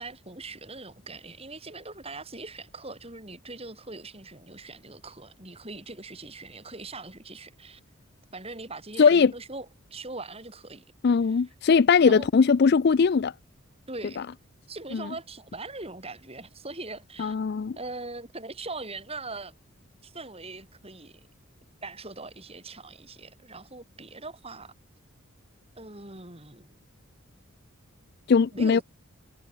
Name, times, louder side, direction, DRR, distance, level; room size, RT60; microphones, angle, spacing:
voice 1, 0.0-7.8 8.3-10.8 11.2-11.4 12.0-12.3 13.9-14.3 14.7-17.4 17.8-19.6 20.0-21.2 21.8-24.7 25.8-26.8 28.5-28.8, right 3 dB, 25° right, 7.1 m, -41 dB
voice 2, 9.0-9.3 11.0-13.3 14.9-15.0 17.2-17.8 28.3-28.8, left 5 dB, 45° left, 0.4 m, -20 dB
head